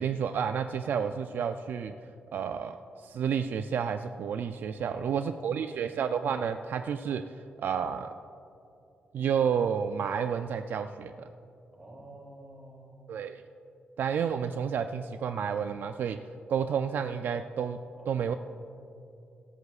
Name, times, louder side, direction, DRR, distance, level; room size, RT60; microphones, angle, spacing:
voice 1, 0.0-1.9 2.3-2.8 3.0-7.2 7.6-8.1 9.1-11.3 13.1-13.4 14.0-16.2 16.5-18.3, right 7 dB, 70° right, 8 dB, 0.3 m, -30 dB
voice 2, 4.8-5.7 11.7-13.0 17.9-18.4, right 1 dB, 20° right, -2 dB, 2.8 m, -49 dB
16.0 x 13.0 x 2.4 m, 2.7 s
cardioid pair, 120°, 3 cm